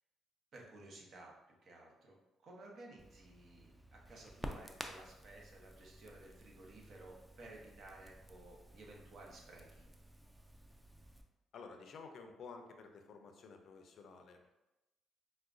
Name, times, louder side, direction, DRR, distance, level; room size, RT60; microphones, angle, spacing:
voice 1, 0.5-1.3 1.6-2.2 2.4-9.8, right 2 dB, 60° right, -1 dB, 0.8 m, -55 dB
Crackle, 3.0-11.2, equal, 5° right, 0.4 m, -53 dB
voice 2, 11.5-14.4, left 4 dB, 65° left, 5 dB, 0.4 m, -52 dB
4.7 x 2.1 x 2.5 m, 0.98 s
cardioid pair, 90°, 0 cm